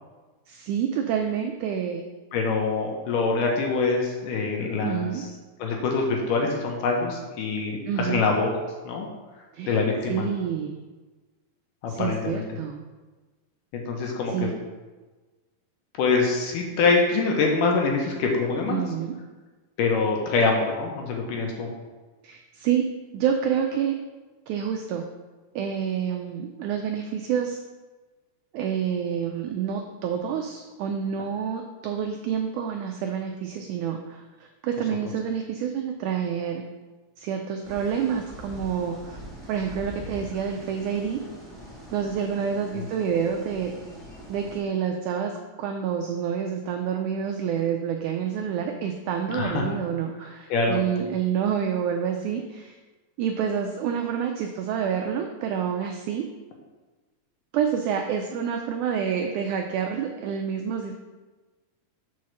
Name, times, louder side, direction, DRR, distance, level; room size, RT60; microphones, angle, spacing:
voice 1, 0.5-2.0 4.8-5.2 7.9-8.2 9.5-9.8 10.1-10.8 11.9-12.8 14.3-14.5 18.7-19.1 22.2-22.8 23.1-23.9 24.5-25.0 25.5-27.6 28.5-36.6 37.2-39.2 39.5-41.2 41.9-43.7 44.3-52.8 53.2-56.3 57.5-60.9, right 8 dB, 85° right, 3 dB, 1.7 m, -28 dB
voice 2, 2.3-5.1 5.6-8.5 8.9-9.1 9.7-10.3 12.0-12.4 13.7-14.5 16.0-18.8 19.8-21.7 42.7-42.9 49.3-49.7 50.5-50.8, left 4 dB, 70° left, 1 dB, 2.4 m, -24 dB
sound 1, 37.6-44.6, equal, ahead, 0.8 m, -43 dB
5.5 x 4.7 x 6.4 m, 1.2 s
omnidirectional pair, 4.1 m